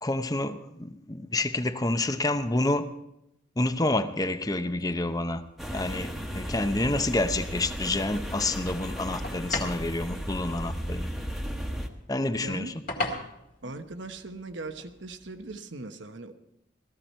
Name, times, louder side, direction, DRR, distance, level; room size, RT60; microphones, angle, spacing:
voice 1, 0.0-2.9 3.6-5.4 5.7-11.1 12.1-12.7, left 2 dB, 20° left, 9 dB, 0.7 m, -28 dB
sound 1, 4.8-15.6, left 2 dB, 45° left, 2.2 m, -41 dB
sound 2, 5.6-11.9, equal, ahead, 1.2 m, -35 dB
voice 2, 12.4-12.7 13.6-16.3, right 2 dB, 80° right, 8 dB, 1.1 m, -39 dB
16.0 x 14.0 x 4.4 m, 0.84 s
head